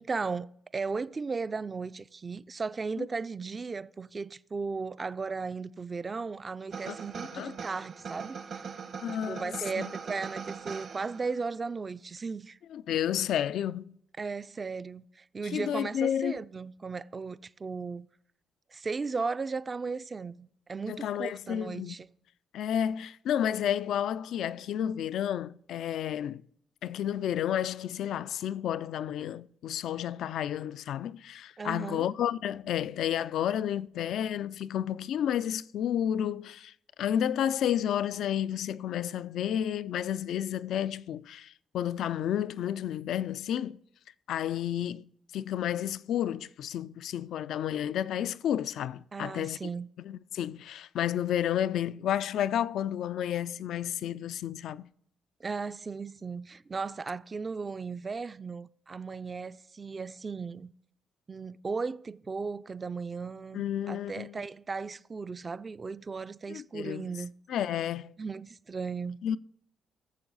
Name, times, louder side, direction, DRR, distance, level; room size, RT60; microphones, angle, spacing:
voice 1, 0.0-8.7 9.3-12.6 14.2-18.1 18.7-22.1 31.6-32.1 49.1-49.9 55.4-60.7 61.3-67.3 68.2-69.2, right 4 dB, 30° right, 0.3 m, -36 dB
sound 1, 6.7-11.5, right 6 dB, 60° right, 1.0 m, -41 dB
voice 2, 9.0-9.9 12.7-14.0 15.5-16.4 20.9-22.0 22.5-26.4 26.8-36.7 37.0-43.8 44.3-49.6 50.1-54.9 63.5-64.4 66.5-67.1 67.5-68.1 69.2-69.4, left 10 dB, 75° left, 0.3 m, -31 dB
16.0 x 7.0 x 4.0 m
cardioid pair, 90°, 0 cm